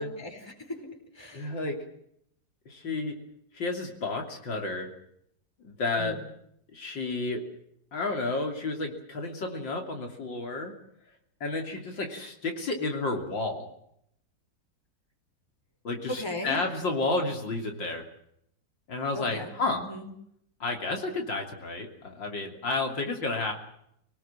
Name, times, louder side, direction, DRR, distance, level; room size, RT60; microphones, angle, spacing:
voice 1, 0.0-1.6 6.0-6.2 16.1-16.7 19.1-20.1, left 1 dB, 10° left, 5 dB, 4.5 m, -38 dB
voice 2, 1.3-1.8 2.7-3.2 3.5-4.9 5.6-6.2 6.7-7.4 7.9-10.7 11.4-13.7 15.8-18.1 18.9-19.8 20.6-23.5, left 3 dB, 75° left, 3 dB, 3.8 m, -31 dB
28.0 x 19.0 x 7.5 m, 0.74 s
omnidirectional pair, 2.0 m